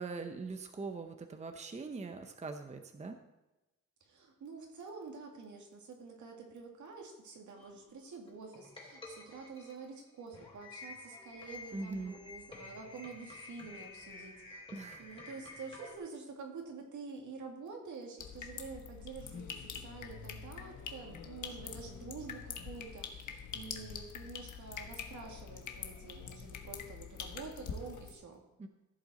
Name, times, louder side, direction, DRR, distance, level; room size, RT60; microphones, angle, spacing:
voice 1, 0.0-3.2 11.7-12.1 14.7-15.0 28.6-28.7, right 3 dB, 25° right, 6 dB, 0.7 m, -42 dB
voice 2, 4.0-14.6 15.0-28.4, right 4 dB, 75° right, 1 dB, 2.3 m, -48 dB
sound 1, 7.6-16.0, left 3 dB, 20° left, 2.7 m, -51 dB
sound 2, 18.2-28.1, left 7 dB, 85° left, 1.2 m, -45 dB
14.5 x 7.6 x 4.3 m, 1.0 s
wide cardioid pair, 140°, 30 cm